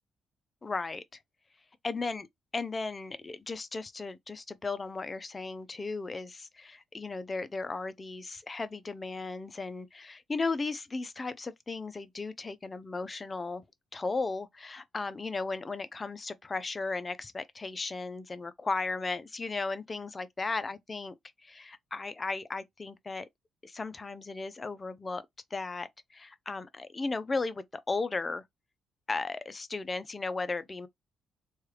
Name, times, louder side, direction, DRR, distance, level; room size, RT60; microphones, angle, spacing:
voice 1, 0.6-1.0 1.8-2.3 2.5-13.6 13.9-21.1 21.4-23.3 23.6-25.2 25.5-28.4 29.1-30.9, left 3 dB, 25° left, 0.5 m, -35 dB
3.2 x 2.3 x 3.1 m
cardioid pair, 90°, 0 cm